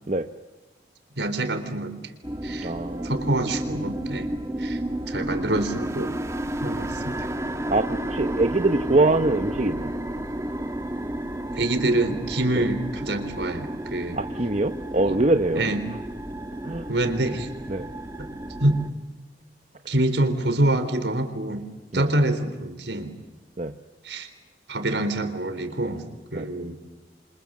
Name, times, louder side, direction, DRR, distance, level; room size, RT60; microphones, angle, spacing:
voice 1, 1.2-2.0 2.4-2.7 3.0-4.3 4.6-4.8 5.1-6.1 6.6-7.3 11.5-14.2 15.0-15.2 15.6-15.9 16.9-17.5 18.6-18.8 19.9-21.7 21.9-23.1 24.0-24.3 24.7-26.0 26.3-26.7, right 1 dB, 75° right, 9 dB, 3.8 m, -26 dB
sound 1, 2.2-18.9, right 1 dB, 15° right, 1.6 m, -32 dB
voice 2, 2.6-3.1 7.7-9.9 12.5-12.7 14.1-15.7 16.6-16.9 17.7-17.9 21.9-22.1 23.6-23.7 26.3-26.5, right 2 dB, 40° right, 8 dB, 0.9 m, -23 dB
28.5 x 26.0 x 7.6 m, 1.2 s
head